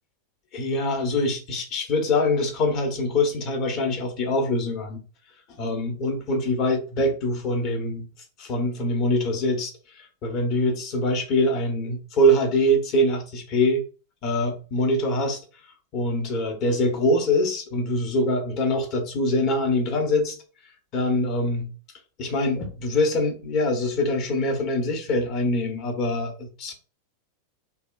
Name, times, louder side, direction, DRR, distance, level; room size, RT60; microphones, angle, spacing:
voice 1, 0.5-5.0 5.6-8.1 8.4-13.8 14.2-15.4 15.9-20.4 20.9-21.7 22.2-26.7, left 1 dB, 40° left, 4 dB, 0.7 m, -24 dB
2.8 x 2.1 x 2.3 m, 0.36 s
figure-of-eight pair, 90°, 0 cm